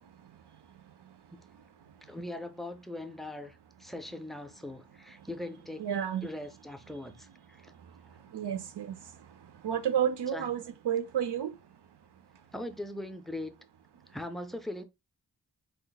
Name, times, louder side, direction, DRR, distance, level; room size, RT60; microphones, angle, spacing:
voice 1, 2.0-5.9 6.2-7.7 10.3-10.5 12.5-13.5 14.1-14.8, left 1 dB, ahead, 0.4 m, -40 dB
voice 2, 5.8-6.3 8.3-8.9 9.6-11.5, right 9 dB, 90° right, 0.6 m, -30 dB
3.3 x 2.0 x 3.9 m
wide cardioid pair, 80°, 40 cm